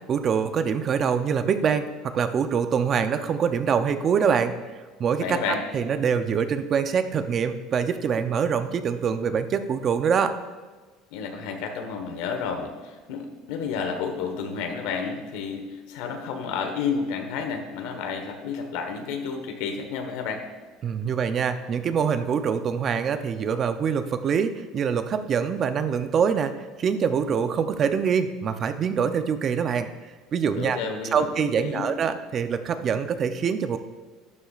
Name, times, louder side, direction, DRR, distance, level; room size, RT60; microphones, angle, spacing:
voice 1, 0.1-4.5 5.0-10.4 20.8-29.9 30.3-30.8 31.1-33.8, right 7 dB, 35° right, 9 dB, 0.6 m, -24 dB
voice 2, 5.2-5.6 11.1-20.4 30.6-31.3 31.5-31.9, left 5 dB, 80° left, 4 dB, 1.3 m, -31 dB
12.0 x 10.0 x 2.5 m, 1.4 s
cardioid pair, 150°, 0 cm